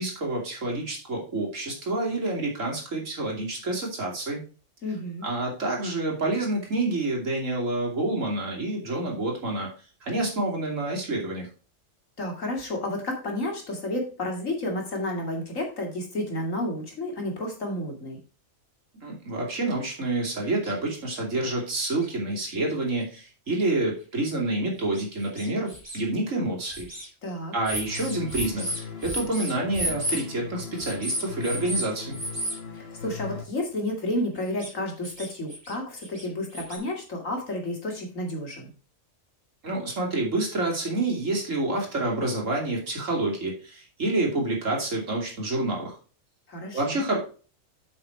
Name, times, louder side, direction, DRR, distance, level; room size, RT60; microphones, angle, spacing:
voice 1, 0.0-4.4 5.2-9.7 10.0-11.5 19.0-26.9 27.5-32.2 39.6-46.0 46.7-47.2, right 2 dB, 75° right, -1 dB, 3.0 m, -28 dB
voice 2, 4.8-5.3 12.2-18.2 27.2-27.5 32.7-38.7 46.5-47.0, left 1 dB, 80° left, 1 dB, 2.9 m, -31 dB
sound 1, 20.2-20.3 20.6-20.7 21.6-21.7 22.0-22.1 22.7-22.8 23.7-23.8 24.1-24.2 24.9-26.0 26.7-27.1 27.7-30.2 30.8-31.9 32.1-32.6 34.4-34.7 35.0-35.7 36.0-36.8, right 1 dB, 20° right, 2.5 m, -33 dB
sound 2, 27.9-33.4, left 6 dB, 50° left, 1.5 m, -39 dB
7.7 x 5.8 x 4.5 m, 0.36 s
omnidirectional pair, 1.3 m